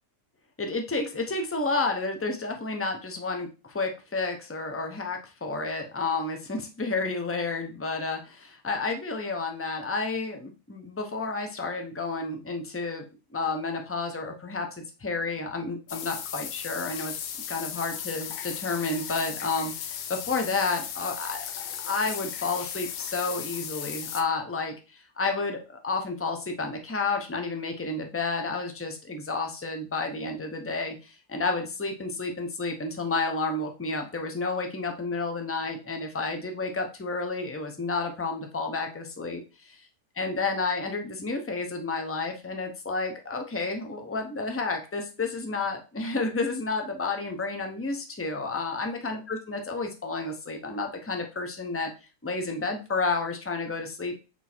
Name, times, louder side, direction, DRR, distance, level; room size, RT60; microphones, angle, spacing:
voice 1, 0.6-13.0 13.3-17.1 17.5-21.5 21.8-24.7 25.2-39.9 40.2-51.9 52.2-54.2, left 3 dB, 15° left, 4 dB, 0.4 m, -31 dB
sound 1, 15.9-24.2, left 9 dB, 85° left, 1.3 m, -36 dB
6.2 x 3.8 x 4.4 m, 0.32 s
omnidirectional pair, 1.7 m